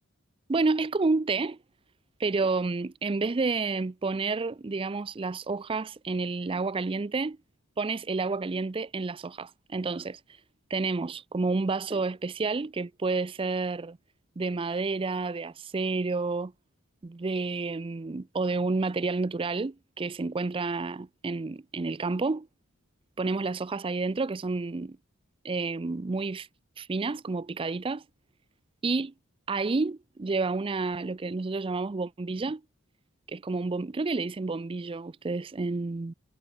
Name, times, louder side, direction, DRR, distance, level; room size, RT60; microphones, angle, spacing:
voice 1, 0.5-1.6 2.2-7.4 7.8-10.2 10.7-14.0 14.4-16.5 17.0-22.5 23.2-25.0 25.4-26.5 26.8-28.0 28.8-29.1 29.5-32.6 33.3-36.1, right 3 dB, 25° right, 0.4 m, -30 dB
head